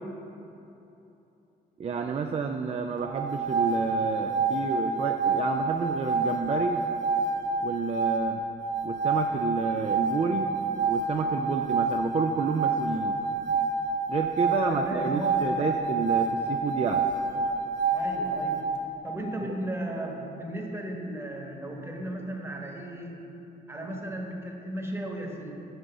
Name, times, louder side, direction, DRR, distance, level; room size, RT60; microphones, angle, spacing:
voice 1, 1.8-6.8 7.6-8.4 8.8-10.5 10.9-13.2 14.1-17.1 19.4-19.5, right 5 dB, 35° right, 5 dB, 0.3 m, -30 dB
sound 1, 3.0-18.8, right 4 dB, 70° right, 0.8 m, -28 dB
voice 2, 14.5-15.7 17.9-23.3 23.7-25.6, right 1 dB, 15° right, 0 dB, 1.1 m, -36 dB
6.1 x 4.9 x 6.6 m, 2.9 s
cardioid pair, 90°, 19 cm